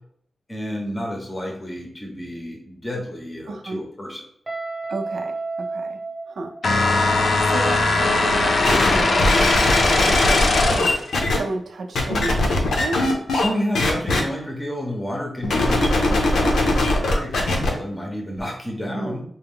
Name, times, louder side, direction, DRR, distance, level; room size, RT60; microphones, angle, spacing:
voice 1, 0.5-4.3 13.4-19.2, equal, 15° left, 0 dB, 0.7 m, -30 dB
voice 2, 3.5-3.8 4.9-6.0 6.3-6.5 7.2-10.9 11.3-13.0 18.8-19.2, right 3 dB, 70° right, 3 dB, 0.5 m, -32 dB
Guitar, 4.5-7.3, right 3 dB, 15° right, 0.9 m, -32 dB
sound 1, 6.6-11.1, left 3 dB, 50° left, 0.5 m, -20 dB
sound 2, 8.6-11.4 11.9-13.5 13.7-14.2 15.4-17.7 18.4-18.5, left 2 dB, 85° left, 0.8 m, -20 dB
4.2 x 2.2 x 3.5 m, 0.63 s
wide cardioid pair, 170°, 0 cm